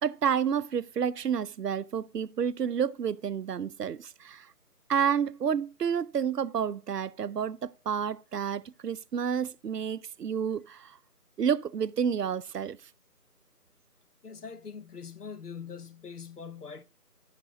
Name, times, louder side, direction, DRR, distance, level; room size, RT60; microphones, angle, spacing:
voice 1, 0.0-4.5 4.9-11.0 11.4-12.8, right 7 dB, 80° right, 0.6 m, -30 dB
voice 2, 14.2-16.8, left 6 dB, 75° left, 0.8 m, -42 dB
9.2 x 5.9 x 2.9 m
figure-of-eight pair, 175°, 47 cm